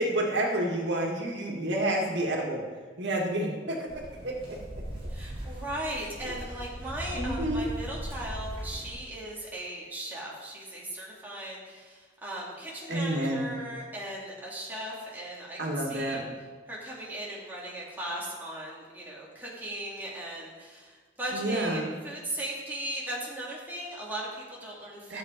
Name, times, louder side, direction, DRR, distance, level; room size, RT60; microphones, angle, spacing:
voice 1, 0.0-2.6 3.0-4.8 7.1-7.7 12.9-13.5 15.6-16.2 21.3-21.9 25.1-25.2, right 1 dB, 75° right, 0 dB, 1.9 m, -29 dB
sound 1, 3.9-8.9, equal, 30° right, 3.6 m, -38 dB
voice 2, 5.1-16.2 16.7-25.2, right 1 dB, 10° right, -5 dB, 2.5 m, -38 dB
13.0 x 8.0 x 5.1 m, 1.4 s
head